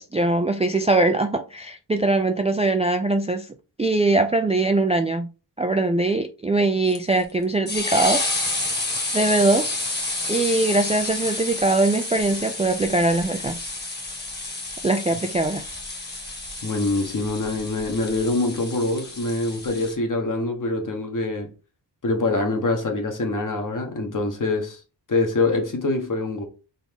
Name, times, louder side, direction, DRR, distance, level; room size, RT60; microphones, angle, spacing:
voice 1, 0.0-3.5 3.8-5.3 5.6-8.6 9.1-9.9 10.3-13.8 14.8-15.6, right 2 dB, 15° right, 0.3 m, -22 dB
sound 1, 6.9-20.0, left 2 dB, 20° left, 1.4 m, -30 dB
voice 2, 16.6-21.5 22.0-24.8 25.1-26.4, left 2 dB, 45° left, 1.3 m, -24 dB
4.1 x 3.4 x 3.5 m
wide cardioid pair, 115°, 44 cm